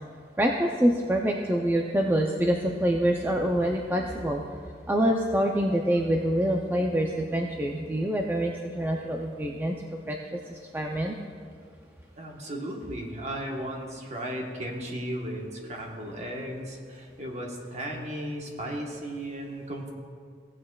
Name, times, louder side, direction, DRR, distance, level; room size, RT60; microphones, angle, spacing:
voice 1, 0.4-4.4 4.9-10.2 10.5-11.1, right 1 dB, 10° right, 1 dB, 0.4 m, -26 dB
voice 2, 12.2-19.9, right 1 dB, 40° right, 1 dB, 1.1 m, -35 dB
15.0 x 8.5 x 2.3 m, 2.1 s
head